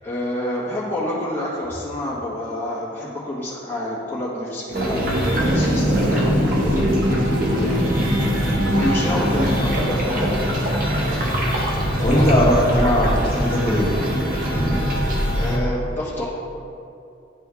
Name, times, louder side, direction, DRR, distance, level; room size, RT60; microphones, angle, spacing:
voice 1, 0.0-7.8 8.7-10.6 12.1-12.2 15.3-16.2, left 1 dB, 10° left, -10 dB, 1.3 m, -28 dB
Keyboard (musical), 4.7-13.4, right 1 dB, 25° right, 0.5 m, -35 dB
sound 1, 4.7-15.6, equal, 50° right, 1.2 m, -22 dB
sound 2, 4.7-11.7, right 1 dB, 65° right, 0.8 m, -33 dB
voice 2, 12.0-14.1 14.4-14.9, equal, 30° left, -7 dB, 1.5 m, -20 dB
11.0 x 3.7 x 3.4 m, 2.6 s
head